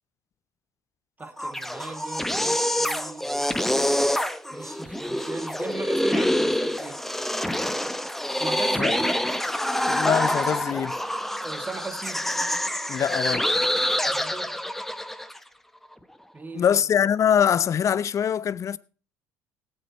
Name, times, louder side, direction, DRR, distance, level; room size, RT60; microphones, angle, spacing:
sound 1, 1.2-15.4, left 1 dB, 5° left, 1.0 m, -26 dB
voice 1, 1.2-3.5 4.5-7.0 8.4-9.1 11.4-12.3 14.1-14.6 16.3-16.8, right 3 dB, 20° right, 2.4 m, -38 dB
voice 2, 9.8-11.0 12.9-13.5 16.5-18.8, left 8 dB, 40° left, 0.7 m, -23 dB
17.5 x 8.7 x 4.3 m
hypercardioid pair, 65°, 8 cm